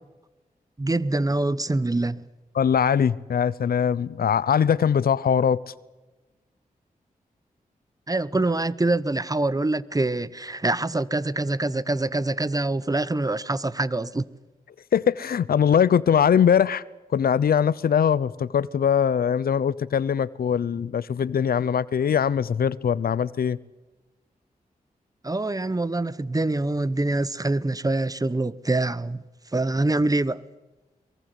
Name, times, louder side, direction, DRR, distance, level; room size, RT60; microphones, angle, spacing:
voice 1, 0.8-2.2 8.1-14.3 25.2-29.2 29.5-30.4, right 2 dB, 25° right, 1.0 m, -25 dB
voice 2, 2.5-5.6 14.9-16.8 17.1-23.6, left 8 dB, 80° left, 0.7 m, -21 dB
23.0 x 23.0 x 8.2 m
cardioid pair, 55°, 15 cm